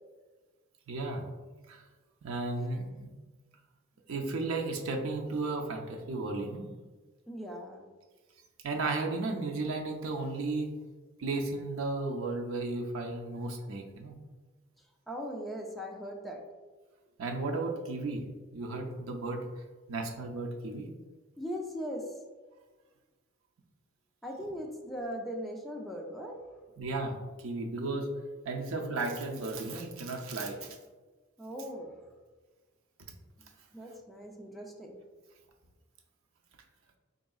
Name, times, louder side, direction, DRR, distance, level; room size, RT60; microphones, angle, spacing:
voice 1, 0.9-1.2 1.7-1.8 2.2-3.1 4.1-6.7 8.6-10.7 11.2-14.2 17.2-18.2 18.5-19.5 19.9-20.9 26.8-28.1 28.5-30.8, right 3 dB, 80° right, 2 dB, 0.5 m, -34 dB
voice 2, 7.3-7.9 15.1-16.4 21.4-22.1 24.2-26.4 31.4-31.9 33.7-35.0, equal, ahead, 0 dB, 0.4 m, -39 dB
4.0 x 3.6 x 2.3 m, 1.3 s
head